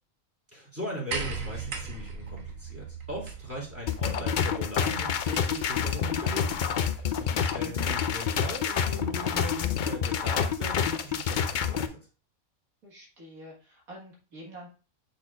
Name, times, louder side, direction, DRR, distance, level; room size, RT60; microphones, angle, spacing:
voice 1, 0.5-12.0, left 1 dB, 10° right, -4 dB, 3.0 m, -39 dB
sound 1, 1.1-6.7 7.8-7.9, right 5 dB, 65° right, 1.5 m, -39 dB
sound 2, 3.9-11.9, left 7 dB, 80° left, 0.4 m, -28 dB
voice 2, 7.4-7.9 12.8-14.7, right 1 dB, 80° right, -2 dB, 2.3 m, -46 dB
6.8 x 6.2 x 2.5 m, 0.35 s
omnidirectional pair, 1.5 m